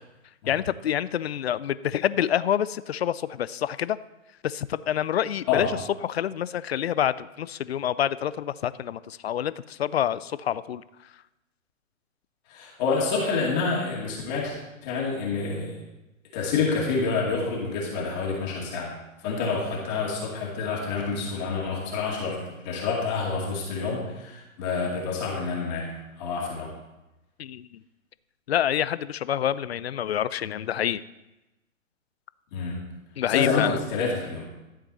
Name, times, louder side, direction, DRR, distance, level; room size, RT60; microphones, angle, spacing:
voice 1, 0.5-4.0 4.4-5.7 6.0-10.8 27.4-27.8 28.5-31.0 33.2-33.8, left 10 dB, 50° left, 17 dB, 0.4 m, -27 dB
voice 2, 12.5-14.5 14.8-15.8 16.3-18.9 19.2-22.4 22.6-26.7 32.5-32.8 33.3-34.5, left 4 dB, 30° left, -2 dB, 2.3 m, -28 dB
13.0 x 7.6 x 4.2 m, 0.99 s
hypercardioid pair, 145°, 41 cm